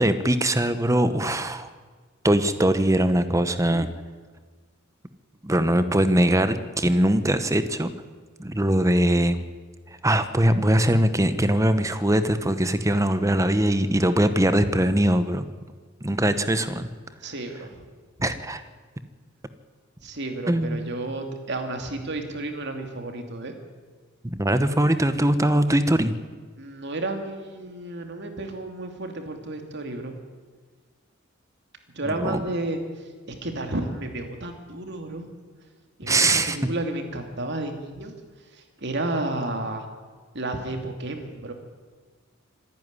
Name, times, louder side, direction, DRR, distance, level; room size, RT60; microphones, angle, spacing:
voice 1, 0.0-1.7 2.2-3.9 5.4-7.9 8.4-9.4 10.0-15.5 16.0-16.9 18.2-18.6 20.5-20.9 24.2-26.1 32.2-32.4 36.1-36.6, right 1 dB, 15° right, 11 dB, 1.0 m, -21 dB
voice 2, 17.2-17.8 20.0-23.5 26.6-30.1 31.9-32.8 33.3-35.3 36.0-38.1 38.5-39.9 40.3-41.5, right 2 dB, 55° right, 5 dB, 2.8 m, -32 dB
26.0 x 10.5 x 9.7 m, 1.5 s
head